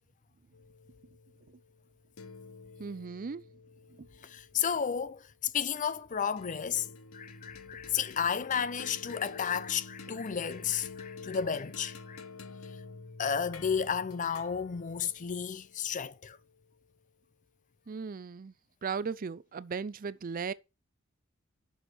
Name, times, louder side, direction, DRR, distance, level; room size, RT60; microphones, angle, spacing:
sound 1, 0.5-5.2 6.4-16.8, left 4 dB, 85° left, 0.8 m, -49 dB
voice 1, 2.8-3.4 17.9-18.5 18.8-20.5, right 5 dB, 45° right, 0.4 m, -36 dB
voice 2, 4.2-12.2 13.2-16.4, left 7 dB, 40° left, 0.5 m, -32 dB
7.7 x 6.4 x 6.1 m
head